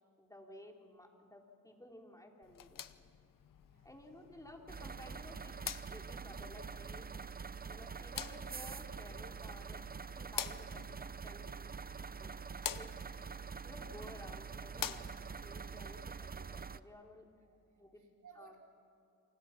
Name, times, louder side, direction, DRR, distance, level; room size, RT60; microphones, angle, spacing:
voice 1, 0.2-2.8 3.8-5.6 5.9-7.3 7.7-9.8 10.2-11.7 12.2-12.3 12.7-13.0 13.6-15.1 15.4-17.2 17.8-18.0 18.4-18.5, left 1 dB, 10° left, 1 dB, 3.7 m, -55 dB
sound 1, 2.4-15.5, left 10 dB, 85° left, 0.9 m, -48 dB
voice 2, 3.6-4.1 17.2-18.6, right 6 dB, 65° right, 0 dB, 4.3 m, -62 dB
sound 2, 4.7-16.8, right 5 dB, 30° right, 0.7 m, -45 dB
28.5 x 25.5 x 6.0 m, 2.5 s
cardioid pair, 70°, 32 cm